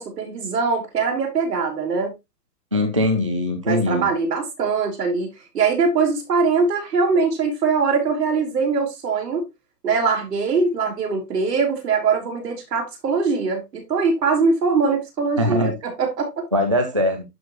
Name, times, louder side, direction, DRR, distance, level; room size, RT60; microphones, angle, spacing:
voice 1, 0.0-2.1 3.6-5.3 5.5-9.5 9.8-16.5, right 4 dB, 80° right, 4.2 m, -22 dB
voice 2, 2.7-4.0 15.4-15.7 16.5-17.2, left 1 dB, 20° right, 0.4 m, -21 dB
12.0 x 4.3 x 3.0 m
hypercardioid pair, 170°, 48 cm